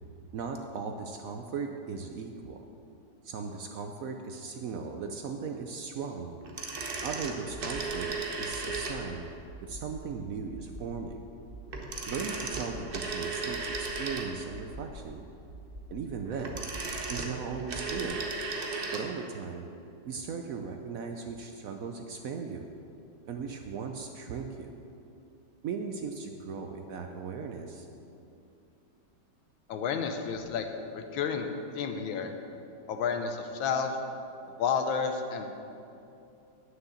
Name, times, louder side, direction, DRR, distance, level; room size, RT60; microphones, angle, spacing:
voice 1, 0.3-2.6 3.2-6.3 7.0-9.3 9.6-11.2 12.1-15.2 15.9-16.6 17.1-18.2 18.9-19.7 20.0-22.7 23.3-24.7 25.6-27.9, right 5 dB, 80° right, 4 dB, 0.7 m, -37 dB
sound 1, 6.4-9.3 11.7-14.6 16.2-19.1 19.4-19.5, right 3 dB, 40° right, 0.8 m, -35 dB
sound 2, 7.5-8.1 8.5-9.1 9.5-10.1 10.5-11.1 11.5-12.1 12.5-13.1 13.5-14.1 14.5-15.1 15.5-16.1 16.5-17.1 17.5-18.1, right 1 dB, 60° right, 1.7 m, -46 dB
voice 2, 29.7-30.7 30.9-32.3 32.9-34.0 34.6-35.5, left 6 dB, 80° left, 6 dB, 1.6 m, -31 dB
9.4 x 6.6 x 7.1 m, 2.7 s
omnidirectional pair, 2.1 m